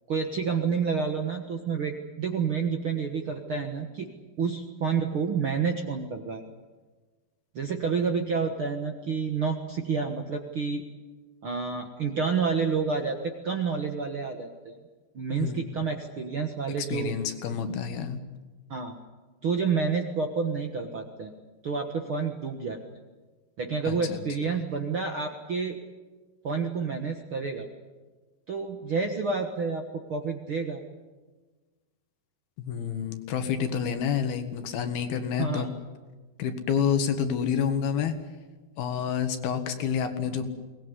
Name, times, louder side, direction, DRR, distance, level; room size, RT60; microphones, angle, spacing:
voice 1, 0.1-4.1 4.4-6.4 7.5-10.8 11.4-14.8 15.1-17.1 18.7-19.0 19.4-21.3 21.6-22.8 23.6-25.8 26.4-27.7 28.5-30.8 35.4-35.7, right 5 dB, 55° right, 4 dB, 1.5 m, -29 dB
voice 2, 16.8-18.2 23.9-24.2 32.6-35.7 36.4-38.1 38.8-40.5, left 7 dB, 75° left, 8 dB, 3.6 m, -28 dB
22.5 x 19.5 x 9.8 m, 1.3 s
omnidirectional pair, 4.5 m